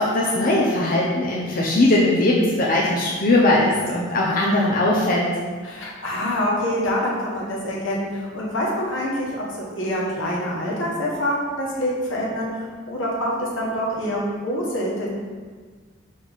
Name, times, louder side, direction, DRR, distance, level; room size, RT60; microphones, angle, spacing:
voice 1, 0.0-5.3, left 1 dB, 45° left, -4 dB, 0.7 m, -19 dB
voice 2, 5.6-15.1, equal, 80° left, -5 dB, 1.7 m, -26 dB
5.5 x 5.1 x 4.1 m, 1.5 s
head